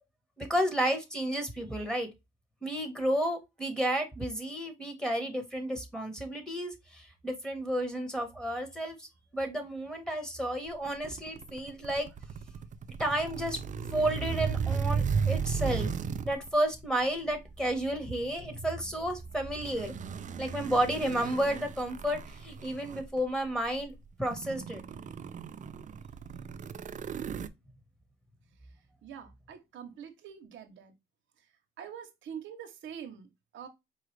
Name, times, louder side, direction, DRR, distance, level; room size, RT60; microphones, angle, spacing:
voice 1, 0.4-2.1 2.6-9.1 9.3-12.1 13.0-13.6 13.9-15.9 16.2-19.9 20.4-23.9 24.2-24.8, right 1 dB, 5° left, 1.3 m, -31 dB
sound 1, 10.8-16.5 17.3-17.5 19.4-23.2 23.8-23.9 24.2-27.5, right 6 dB, 40° right, 0.4 m, -35 dB
voice 2, 29.0-30.9 31.8-33.7, right 8 dB, 75° right, 0.8 m, -45 dB
4.6 x 2.4 x 3.2 m
cardioid pair, 90°, 20 cm